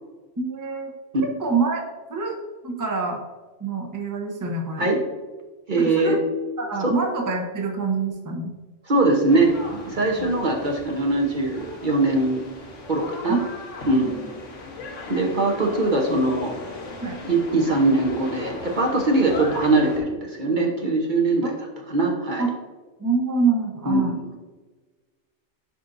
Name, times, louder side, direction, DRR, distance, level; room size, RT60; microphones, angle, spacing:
voice 1, 0.4-0.9 1.4-1.8 2.1-2.4 2.6-3.2 3.6-4.9 5.8-6.2 6.6-8.5 10.2-10.3 13.3-13.5 17.0-17.2 21.4-21.5 22.4-22.5 23.0-24.1, right 4 dB, 20° right, 1 dB, 0.8 m, -25 dB
voice 2, 5.7-6.2 6.8-6.9 8.9-12.4 12.9-13.4 13.8-14.3 15.1-16.5 17.2-21.5 21.9-22.4 23.9-24.2, right 2 dB, 45° right, 1 dB, 1.1 m, -21 dB
sound 1, 9.3-20.0, left 2 dB, 85° left, 1.5 m, -38 dB
10.5 x 4.4 x 2.6 m, 1.3 s
omnidirectional pair, 1.2 m